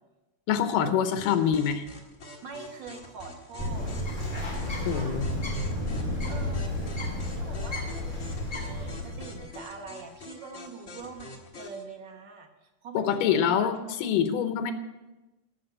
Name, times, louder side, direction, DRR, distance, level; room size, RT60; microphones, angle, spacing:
voice 1, 0.5-1.8 4.9-5.3 12.9-14.7, left 8 dB, 90° left, 8 dB, 2.5 m, -25 dB
sound 1, 1.2-11.8, left 2 dB, 35° left, 1.3 m, -46 dB
voice 2, 2.4-3.9 4.6-5.2 6.3-6.6 7.3-8.0 8.6-13.7, right 4 dB, 60° right, 3 dB, 1.2 m, -44 dB
Bird, 3.6-9.5, left 1 dB, 20° left, 3.7 m, -32 dB
sound 2, 3.7-8.9, left 1 dB, 5° left, 3.9 m, -48 dB
13.0 x 6.1 x 8.0 m, 1.1 s
omnidirectional pair, 3.7 m